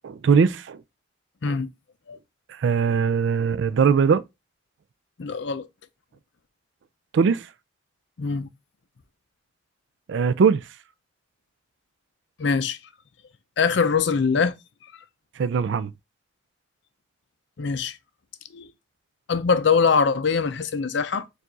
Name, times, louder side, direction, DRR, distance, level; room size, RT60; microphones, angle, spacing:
voice 1, 0.0-0.8 1.5-1.6 2.6-4.2 7.1-7.5 10.1-10.6 15.4-15.9, right 6 dB, 65° right, 0.3 m, -20 dB
voice 2, 5.2-5.7 8.2-8.5 12.4-12.8 13.6-14.5 17.6-18.0 18.5-18.7 19.3-21.2, left 5 dB, 60° left, 0.5 m, -22 dB
4.6 x 2.4 x 3.9 m
head